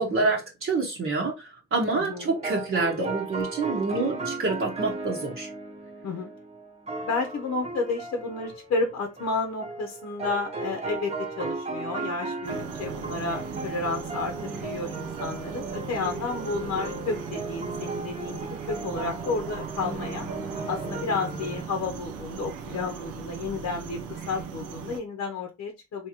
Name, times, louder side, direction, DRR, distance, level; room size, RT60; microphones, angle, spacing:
voice 1, 0.0-5.5, right 3 dB, 45° right, 1.1 m, -27 dB
voice 2, 1.9-2.3 6.0-6.3 7.0-20.3 20.7-26.1, left 4 dB, 55° left, 0.8 m, -31 dB
sound 1, 2.0-21.6, right 3 dB, 20° right, 1.0 m, -36 dB
sound 2, 12.4-25.0, right 6 dB, 85° right, 0.6 m, -38 dB
3.5 x 2.9 x 2.8 m
cardioid pair, 90°, 30 cm